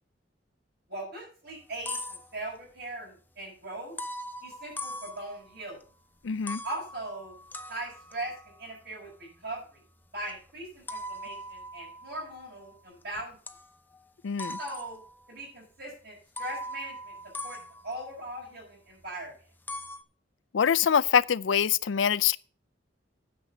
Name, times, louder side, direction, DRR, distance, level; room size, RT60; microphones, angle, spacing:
voice 1, 0.9-3.9 4.4-5.8 6.6-7.3 7.7-8.3 8.6-9.8 10.1-13.4 14.6-15.0 15.3-17.1 17.4-17.6 17.8-19.4, right 1 dB, 60° right, 6.2 m, -40 dB
sound 1, 1.5-2.8 4.0-5.8 6.2-13.0 13.5-14.0 14.4-15.4 15.8-15.9 16.4-19.1 19.4-20.0, left 1 dB, 10° left, 0.8 m, -41 dB
voice 2, 6.2-6.6 14.2-14.6 20.5-22.4, left 8 dB, 90° left, 0.5 m, -24 dB
9.5 x 6.8 x 6.9 m
head